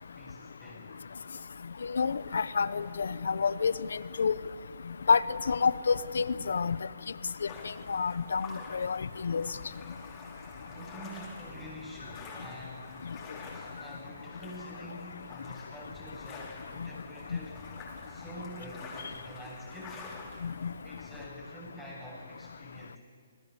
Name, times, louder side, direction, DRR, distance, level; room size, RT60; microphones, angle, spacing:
voice 1, 0.1-0.9 10.6-13.0 13.3-17.5 18.1-20.0 20.8-23.0, equal, 10° right, -6 dB, 7.9 m, -47 dB
voice 2, 1.9-4.4 5.1-6.8 7.9-8.5 8.7-9.5 20.4-20.7, left 5 dB, 80° left, 16 dB, 0.9 m, -28 dB
sound 1, 7.5-21.3, left 3 dB, 15° left, 5.3 m, -48 dB
27.0 x 20.0 x 7.1 m, 2.1 s
hypercardioid pair, 160°, 0 cm